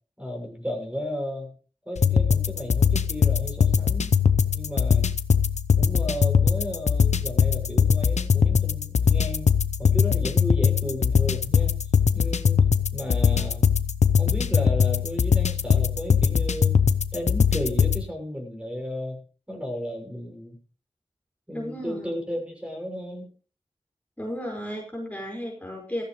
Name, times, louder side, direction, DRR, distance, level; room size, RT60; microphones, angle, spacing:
voice 1, 0.2-1.5 1.8-4.1 4.5-5.1 5.8-9.5 9.8-11.7 12.1-12.6 12.9-13.7 14.2-16.8 17.1-19.2 19.5-20.6 21.5-23.3, left 1 dB, 10° right, 1 dB, 6.4 m, -33 dB
sound 1, 2.0-18.0, left 6 dB, 85° left, 0.7 m, -21 dB
voice 2, 21.5-22.1 24.2-26.0, equal, 10° left, -2 dB, 5.0 m, -34 dB
16.0 x 14.5 x 3.2 m, 0.39 s
wide cardioid pair, 50°, 12 cm